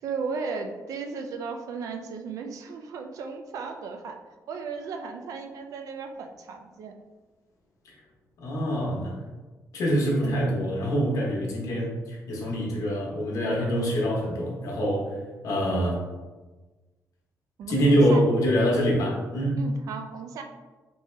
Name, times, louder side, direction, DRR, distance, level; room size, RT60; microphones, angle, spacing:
voice 1, 0.0-4.2 4.5-6.9 10.2-10.4 17.6-18.2 19.6-20.4, right 5 dB, 65° right, 4 dB, 0.4 m, -35 dB
voice 2, 8.4-9.2 9.7-15.1 15.4-16.0 17.7-19.6, equal, 65° left, -2 dB, 0.9 m, -25 dB
3.5 x 2.8 x 3.2 m, 1.2 s
wide cardioid pair, 170°, 6 cm